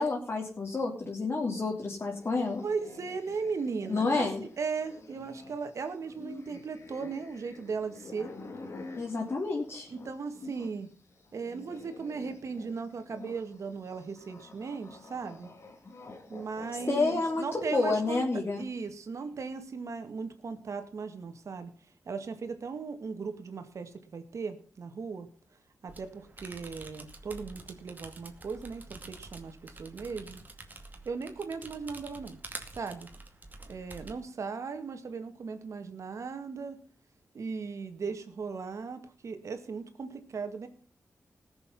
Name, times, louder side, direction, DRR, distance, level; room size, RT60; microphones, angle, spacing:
voice 1, 0.0-2.6 3.9-4.4 9.0-9.9 16.9-18.6, left 3 dB, 45° left, -1 dB, 3.1 m, -29 dB
sound 1, 2.0-10.8 11.1-17.9, left 3 dB, 60° left, 2.7 m, -48 dB
voice 2, 2.6-8.3 9.9-10.9 11.3-15.5 16.3-18.2 18.6-21.7 22.1-25.3 25.8-30.4 31.1-32.4 32.8-33.1 33.7-36.8 37.3-40.7, right 5 dB, 70° right, 8 dB, 2.1 m, -37 dB
sound 2, 25.9-34.1, right 2 dB, 35° right, 2.4 m, -47 dB
19.5 x 7.1 x 5.5 m, 0.43 s
wide cardioid pair, 100°, 5 cm